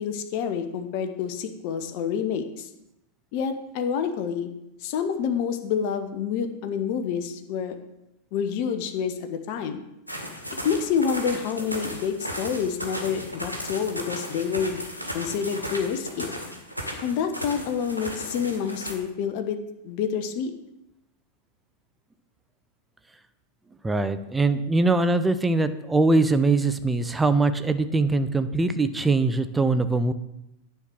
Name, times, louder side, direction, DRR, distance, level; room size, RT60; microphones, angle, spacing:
voice 1, 0.0-2.7 3.3-4.5 4.8-7.7 8.3-9.8 10.6-14.8 15.1-16.3 17.0-19.6 19.8-20.5, left 7 dB, 45° left, 7 dB, 0.9 m, -28 dB
sound 1, 10.1-18.9, equal, 90° left, 1.4 m, -35 dB
voice 2, 23.8-30.1, right 3 dB, 10° right, 11 dB, 0.6 m, -22 dB
9.8 x 4.5 x 6.4 m, 0.89 s
figure-of-eight pair, 90°, 0 cm